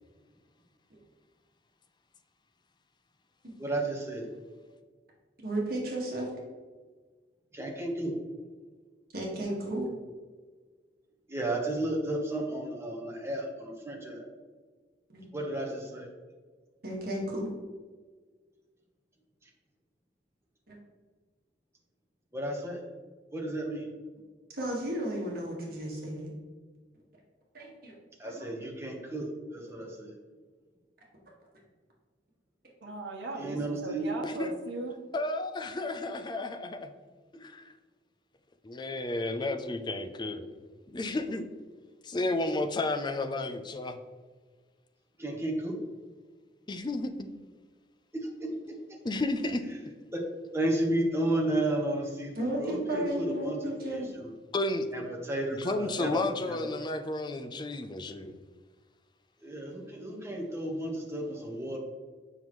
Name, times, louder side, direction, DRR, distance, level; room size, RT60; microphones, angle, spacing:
voice 1, 3.6-4.3 7.5-8.1 11.3-14.2 15.3-16.1 22.3-22.8 23.3-23.9 28.2-30.1 33.4-34.1 45.2-45.8 48.2-48.5 50.1-50.2 50.5-53.6 53.8-54.3 54.9-56.2 56.4-56.7 59.4-61.8, right 1 dB, 15° right, -1 dB, 1.2 m, -33 dB
voice 2, 5.4-6.3 9.1-9.9 15.1-15.3 16.8-17.5 20.7-20.8 24.5-26.3 27.5-27.9 28.2-28.5 52.3-54.1, right 1 dB, 55° right, -2 dB, 1.8 m, -34 dB
voice 3, 32.8-35.0, right 2 dB, 85° right, -1 dB, 1.0 m, -38 dB
voice 4, 35.1-36.9 37.4-37.6 38.6-40.5 40.9-41.5 42.1-44.0 46.7-47.3 49.0-49.6 54.5-54.9 55.6-58.3, left 2 dB, 25° left, 8 dB, 0.5 m, -32 dB
7.0 x 5.7 x 3.1 m, 1.5 s
head